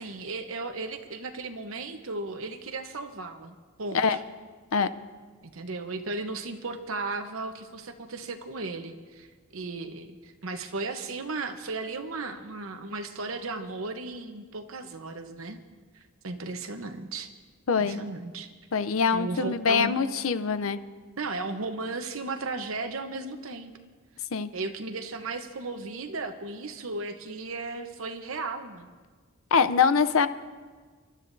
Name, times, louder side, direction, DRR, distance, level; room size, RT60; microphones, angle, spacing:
voice 1, 0.0-4.2 5.4-9.3 9.5-15.6 16.2-17.3 17.7-18.5 19.1-20.0 21.2-23.7 24.5-28.9, right 3 dB, 65° right, 7 dB, 1.0 m, -35 dB
voice 2, 17.7-18.0 18.7-20.8 24.3-24.5 29.5-30.3, left 5 dB, 70° left, 12 dB, 0.6 m, -24 dB
29.5 x 12.5 x 2.7 m, 1.5 s
head